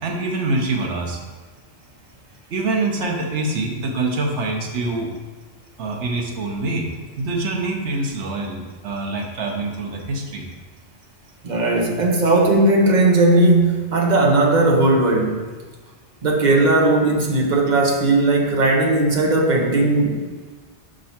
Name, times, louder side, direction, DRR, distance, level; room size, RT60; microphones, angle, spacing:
voice 1, 0.0-1.2 2.5-5.1 5.8-6.9 7.2-10.4, right 2 dB, 85° right, 1 dB, 1.2 m, -25 dB
voice 2, 11.4-15.5 16.2-20.2, right 2 dB, 45° right, 0 dB, 0.9 m, -17 dB
5.2 x 3.7 x 5.7 m, 1.4 s
omnidirectional pair, 1.2 m